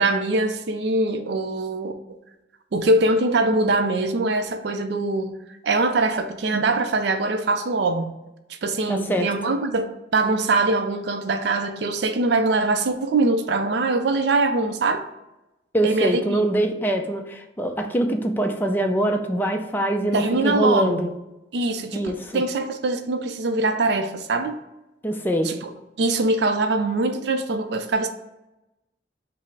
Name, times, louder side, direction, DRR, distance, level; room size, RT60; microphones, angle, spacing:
voice 1, 0.0-1.9 2.7-5.3 5.6-8.1 8.5-15.1 15.8-16.5 20.1-21.0 21.5-24.6 25.4-25.7 26.0-28.1, right 2 dB, 65° right, 0.4 m, -23 dB
voice 2, 8.9-9.3 15.7-21.1 21.9-22.4 25.0-25.5, right 1 dB, 10° left, 0.4 m, -23 dB
5.6 x 2.0 x 4.6 m
head